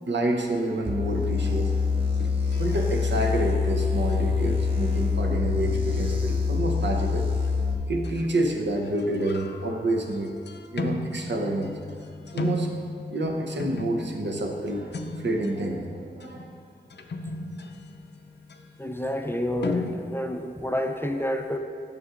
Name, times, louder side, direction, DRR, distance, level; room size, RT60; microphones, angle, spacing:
voice 1, 0.0-2.1 2.6-7.3 7.6-10.3 10.7-11.7 12.3-12.7 13.1-16.5, right 1 dB, 80° right, 1 dB, 0.7 m, -28 dB
sound 1, 0.9-7.7, left 5 dB, 30° right, 0.9 m, -25 dB
sound 2, 1.4-1.8 2.2-3.7 4.1-4.3 6.0-6.1 6.8-7.5 8.0-8.4 8.8-20.0, left 2 dB, 75° left, 0.4 m, -36 dB
voice 2, 18.8-21.6, equal, 10° left, 4 dB, 0.4 m, -29 dB
9.1 x 6.0 x 2.5 m, 2.2 s
wide cardioid pair, 75°, 18 cm